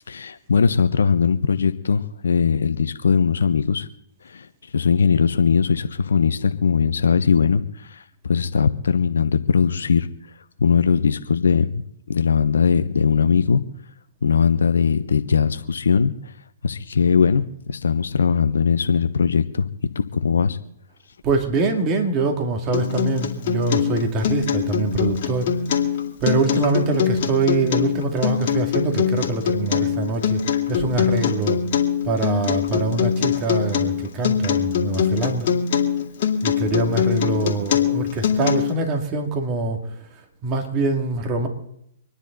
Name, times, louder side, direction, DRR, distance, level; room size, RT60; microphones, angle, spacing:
voice 1, 0.1-3.9 4.2-4.5 4.7-10.1 10.6-11.8 12.1-13.6 14.2-16.1 16.6-19.7 19.9-20.6, left 6 dB, 75° left, 10 dB, 0.8 m, -20 dB
voice 2, 21.2-25.5 26.2-30.4 30.7-31.6 32.0-35.5 36.4-39.8 40.4-41.5, right 3 dB, 30° right, 3 dB, 2.6 m, -24 dB
Acoustic guitar, 22.7-38.7, left 7 dB, 55° left, 2.2 m, -22 dB
26.0 x 10.0 x 4.0 m, 0.75 s
hypercardioid pair, 125°, 0 cm